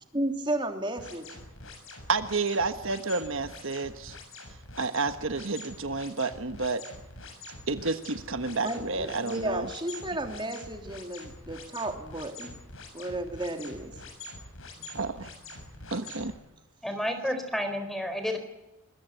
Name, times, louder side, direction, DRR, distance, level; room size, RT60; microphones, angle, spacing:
voice 1, 0.1-1.3 8.6-12.5 12.9-13.9 14.8-15.0 15.6-15.9, right 1 dB, 20° right, 5 dB, 3.1 m, -33 dB
sound 1, 1.0-16.3, left 2 dB, 65° left, 7.1 m, -45 dB
voice 2, 2.1-4.2 4.8-6.8 7.7-9.7 14.9-15.3 15.9-16.3, right 3 dB, 60° right, 9 dB, 1.3 m, -30 dB
voice 3, 16.8-18.4, equal, ahead, 8 dB, 4.3 m, -30 dB
25.5 x 21.5 x 9.2 m, 0.96 s
head